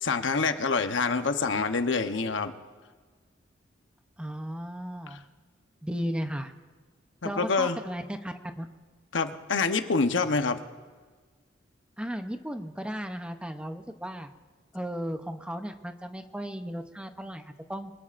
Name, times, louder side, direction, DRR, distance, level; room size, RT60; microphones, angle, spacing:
voice 1, 0.0-2.5 5.1-5.2 7.2-7.8 9.1-10.6, left 4 dB, 80° left, 8 dB, 0.9 m, -26 dB
voice 2, 4.2-5.2 5.8-6.5 7.2-8.7 12.0-14.3 14.7-17.9, equal, 5° right, 7 dB, 0.7 m, -35 dB
25.5 x 20.0 x 2.6 m, 1.5 s
head